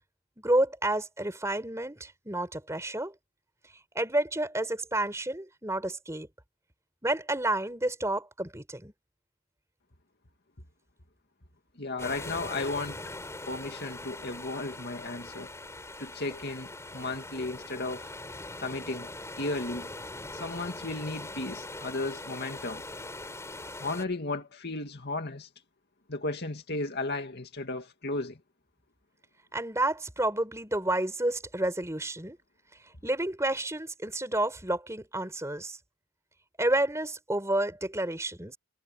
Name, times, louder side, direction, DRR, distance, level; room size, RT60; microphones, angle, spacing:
voice 1, 0.4-3.1 3.9-6.3 7.0-8.9 29.5-32.4 33.0-35.8 36.6-38.6, right 1 dB, 15° right, 4.1 m, -30 dB
voice 2, 11.8-13.0 13.5-15.5 16.0-18.1 18.6-19.1 19.4-19.9 20.3-22.8 23.8-25.5 26.1-28.4, left 2 dB, 45° left, 2.3 m, -34 dB
sound 1, 12.0-24.1, left 2 dB, 10° left, 5.0 m, -41 dB
head